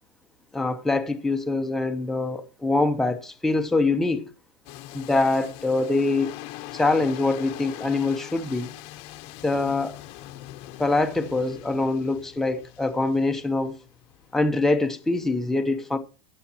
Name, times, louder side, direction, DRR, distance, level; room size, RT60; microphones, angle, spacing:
voice 1, 0.5-4.3 4.9-6.4 6.7-8.7 9.4-10.0 10.8-13.7 14.3-16.0, left 2 dB, ahead, 0.6 m, -24 dB
sound 1, 4.7-14.5, left 15 dB, 35° left, 0.8 m, -42 dB
21.0 x 7.0 x 2.8 m
supercardioid pair, 165°, 17 cm